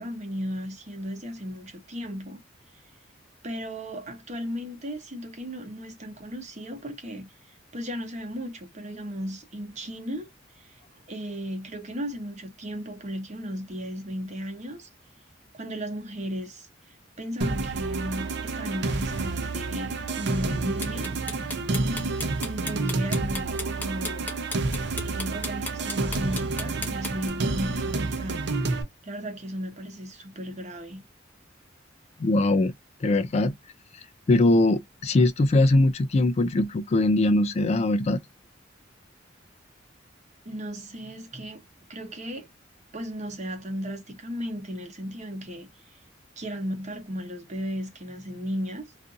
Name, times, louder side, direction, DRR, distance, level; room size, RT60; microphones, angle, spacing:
voice 1, 0.0-2.4 3.4-7.3 7.7-10.3 10.6-10.8 11.1-14.9 15.5-21.1 22.4-24.3 25.0-28.4 29.0-31.0 40.4-41.6 41.9-42.5 42.9-46.0 46.4-48.9, equal, 40° right, 0.8 m, -35 dB
sound 1, 17.4-28.8, right 3 dB, 65° right, 0.5 m, -29 dB
sound 2, 20.8-27.3, left 2 dB, 10° left, 0.7 m, -35 dB
voice 2, 32.2-32.7 33.0-33.5 34.3-38.2, left 2 dB, 35° left, 0.3 m, -21 dB
2.5 x 2.4 x 2.5 m
head